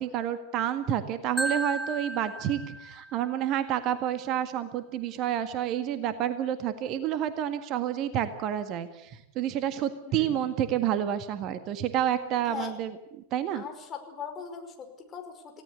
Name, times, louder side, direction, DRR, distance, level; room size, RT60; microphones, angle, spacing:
voice 1, 0.0-12.9 13.3-13.6, right 10 dB, 35° right, 10 dB, 1.7 m, -29 dB
Marimba xylophone, 1.4-3.4, right 1 dB, 5° left, 1.1 m, -34 dB
voice 2, 10.0-10.5 12.4-12.7 13.5-15.6, left 7 dB, 25° left, 5 dB, 5.4 m, -40 dB
29.0 x 17.5 x 8.3 m, 0.86 s
figure-of-eight pair, 90°, 0 cm